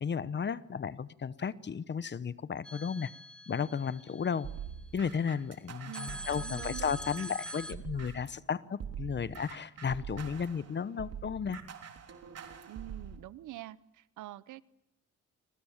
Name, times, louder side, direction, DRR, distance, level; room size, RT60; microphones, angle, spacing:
voice 1, 0.0-3.1 3.5-4.5 4.9-11.6, left 6 dB, 35° left, 16 dB, 1.0 m, -34 dB
sound 1, 2.6-4.9 5.9-7.7, equal, 5° left, 1.2 m, -44 dB
sound 2, 4.4-8.4 8.8-13.2, right 7 dB, 55° right, 3.6 m, -44 dB
voice 2, 5.9-7.0 12.7-14.6, right 14 dB, 80° right, 18 dB, 0.9 m, -46 dB
27.5 x 25.5 x 7.4 m, 0.85 s
cardioid pair, 90°, 30 cm